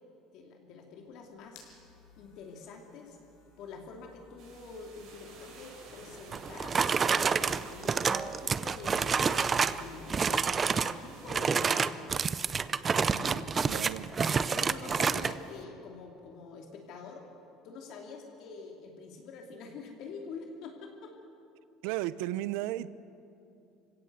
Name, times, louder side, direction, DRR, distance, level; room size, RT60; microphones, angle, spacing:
voice 1, 0.3-1.6 2.2-3.2 3.6-10.5 10.8-12.1 13.0-13.8 14.4-17.2 17.6-21.1, left 4 dB, 50° left, 2 dB, 2.6 m, -46 dB
sound 1, 1.0-10.6, left 4 dB, 70° left, 6.0 m, -56 dB
sound 2, 4.4-11.4, right 4 dB, 50° right, 5.8 m, -53 dB
sound 3, 6.3-9.8 10.1-11.0 11.3-15.3, right 5 dB, 20° right, 0.5 m, -28 dB
voice 2, 13.7-14.2 21.8-22.9, right 15 dB, 80° right, 17 dB, 0.7 m, -34 dB
26.0 x 16.5 x 8.1 m, 2.7 s
cardioid pair, 165°, 0 cm